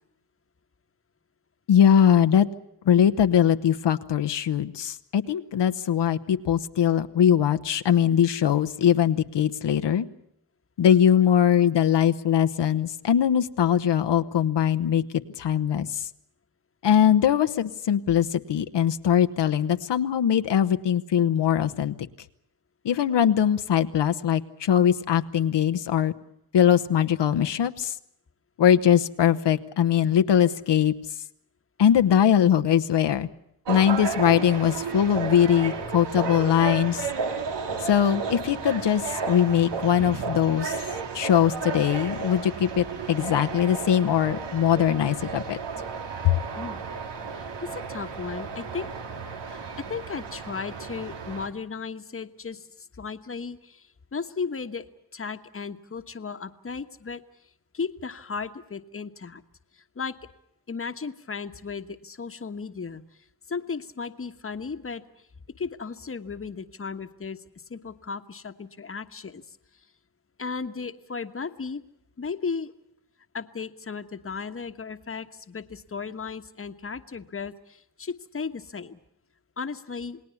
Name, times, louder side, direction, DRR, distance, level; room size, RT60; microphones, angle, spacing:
voice 1, 1.7-2.5 2.8-10.1 10.8-15.0 15.4-16.1 16.8-21.9 22.8-26.1 26.5-28.0 28.6-30.9 31.8-33.3 33.7-37.1 37.8-40.8 41.1-45.6 46.2-46.4, left 9 dB, 85° left, 9 dB, 1.0 m, -21 dB
sound 1, 33.6-51.5, right 5 dB, 90° right, 2.6 m, -33 dB
voice 2, 46.5-46.9 47.3-48.9 49.5-54.9 55.1-57.2 57.7-59.4 59.7-60.2 60.7-63.0 63.5-65.0 65.6-67.4 67.7-69.6 70.4-71.8 72.2-72.7 73.3-79.0 79.6-80.2, left 5 dB, 30° left, 9 dB, 1.3 m, -35 dB
28.5 x 19.0 x 7.1 m, 0.76 s
wide cardioid pair, 115°, 41 cm